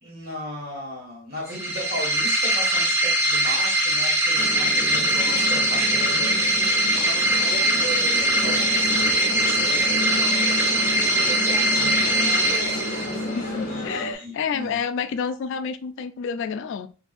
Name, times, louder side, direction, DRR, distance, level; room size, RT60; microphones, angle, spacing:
voice 1, 0.0-6.5 7.7-14.8, equal, 45° right, 1.4 m, -37 dB
sound 1, 1.5-13.4, right 1 dB, 10° right, 0.5 m, -22 dB
sound 2, 4.4-14.2, left 1 dB, 35° left, 1.2 m, -31 dB
voice 2, 13.4-16.9, left 6 dB, 60° left, 0.3 m, -29 dB
3.8 x 2.6 x 2.4 m
head